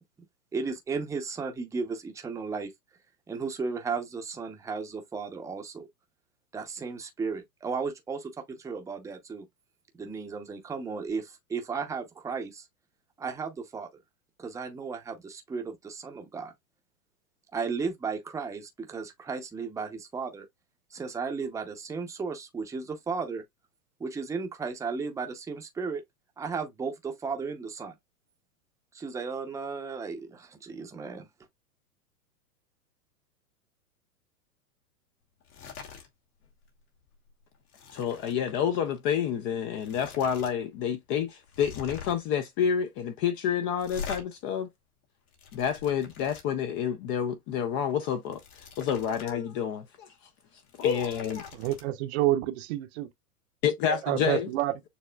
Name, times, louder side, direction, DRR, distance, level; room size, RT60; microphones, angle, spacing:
voice 1, 0.5-2.7 3.3-5.9 6.5-9.5 10.0-12.7 13.2-13.9 14.4-16.5 17.5-20.5 20.9-23.4 24.0-26.0 26.4-28.0 28.9-31.3, right 5 dB, 5° right, 0.7 m, -35 dB
sound 1, 35.4-36.1 36.4-36.7 37.0-38.4 39.3-39.4 39.7-40.5 40.8-40.9 41.5-42.3 43.8-44.2 45.0-46.4 48.1-49.4 49.7-49.8 50.5-51.8, left 6 dB, 75° left, 2.6 m, -44 dB
voice 2, 37.9-44.7 45.5-48.4 48.8-50.1 50.8-51.5 53.6-54.5, left 8 dB, 30° left, 0.5 m, -28 dB
voice 3, 51.5-53.1 53.9-54.8, right 14 dB, 45° right, 0.8 m, -28 dB
6.9 x 3.0 x 2.3 m
hypercardioid pair, 120°, 45 cm